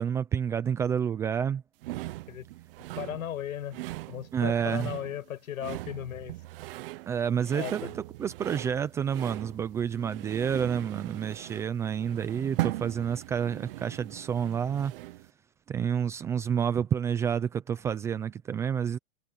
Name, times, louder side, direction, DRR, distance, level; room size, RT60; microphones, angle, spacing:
voice 1, 0.0-1.6 4.3-4.9 7.1-14.9 15.7-19.0, right 8 dB, 5° right, 0.4 m, -29 dB
sound 1, 1.8-15.3, right 18 dB, 40° right, 0.8 m, -39 dB
voice 2, 3.0-6.4 7.5-7.9, left 10 dB, 70° left, 6.8 m, -36 dB
hypercardioid pair, 140°, 43 cm